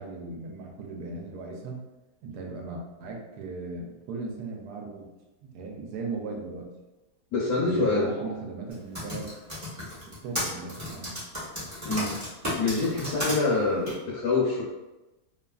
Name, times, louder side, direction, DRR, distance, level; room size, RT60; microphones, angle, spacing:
voice 1, 0.0-1.8 2.2-5.1 5.4-6.7 7.6-9.3 10.0-11.2, right 3 dB, 80° right, 0 dB, 1.1 m, -37 dB
voice 2, 7.3-8.3 11.8-12.2 12.6-14.6, left 3 dB, 75° left, -6 dB, 1.1 m, -26 dB
Typing, 8.7-13.3 13.9-14.0, equal, 15° right, 0.7 m, -33 dB
2.9 x 2.4 x 2.3 m, 1.1 s
omnidirectional pair, 1.7 m